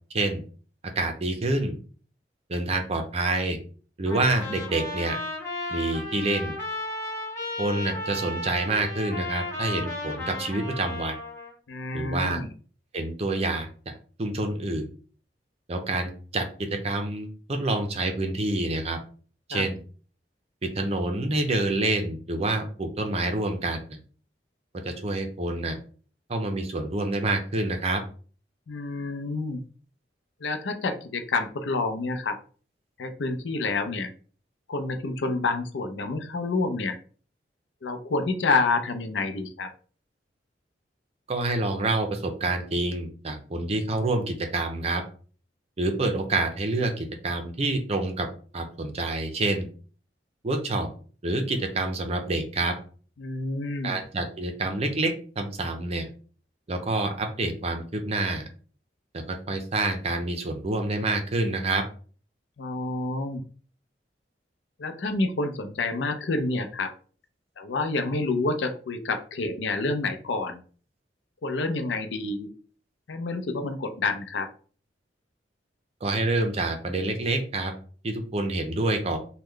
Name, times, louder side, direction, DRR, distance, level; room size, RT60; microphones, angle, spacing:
voice 1, 1.0-1.8 2.5-3.6 4.0-5.2 5.7-6.5 7.6-11.2 11.9-12.4 12.9-13.9 14.2-14.9 15.7-19.0 19.5-19.8 20.6-23.8 24.8-25.8 26.3-28.0 41.3-45.0 45.8-48.3 48.5-49.7 50.4-50.9 51.2-52.7 53.8-56.1 56.7-58.5 59.1-61.8 76.0-77.7 78.0-79.2, right 2 dB, 35° right, 5 dB, 0.6 m, -27 dB
Trumpet, 4.1-11.5, left 2 dB, 15° left, 1.3 m, -34 dB
voice 2, 11.7-12.5 19.5-19.6 28.7-29.6 30.4-32.4 33.0-34.1 34.7-37.0 37.8-39.7 53.2-54.0 62.6-63.4 64.8-66.9 67.6-70.6 71.4-72.5 73.1-74.5, left 3 dB, 90° left, 8 dB, 0.5 m, -28 dB
3.1 x 2.3 x 3.6 m, 0.41 s
head